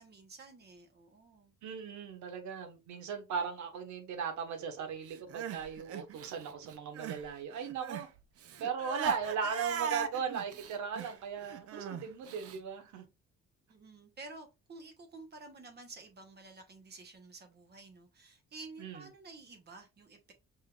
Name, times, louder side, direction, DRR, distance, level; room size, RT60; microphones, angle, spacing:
voice 1, 0.0-1.5 13.7-20.3, right 3 dB, 35° right, 1.2 m, -51 dB
voice 2, 1.6-8.1 8.6-13.0 18.8-19.0, right 6 dB, 75° right, 1.4 m, -37 dB
Crying sobbing, 5.1-7.3 7.5-12.6, right 9 dB, 50° right, 0.7 m, -40 dB
5.4 x 3.7 x 2.4 m
cardioid pair, 150°, 29 cm